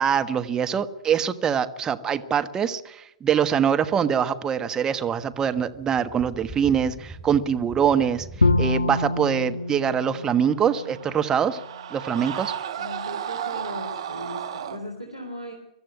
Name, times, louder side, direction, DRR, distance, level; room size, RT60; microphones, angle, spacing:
voice 1, 0.0-8.3 8.6-11.6 11.9-12.5, right 8 dB, 20° right, 9 dB, 1.3 m, -24 dB
sound 1, 5.0-8.6, right 1 dB, 15° left, 1.6 m, -42 dB
Bowed string instrument, 8.4-11.5, left 2 dB, 80° left, 2.2 m, -26 dB
Screaming, 10.3-14.8, right 9 dB, 60° right, 2.1 m, -34 dB
voice 2, 12.8-15.5, equal, 90° right, 3 dB, 3.8 m, -37 dB
23.5 x 13.5 x 9.6 m, 0.83 s
figure-of-eight pair, 110°, 3 cm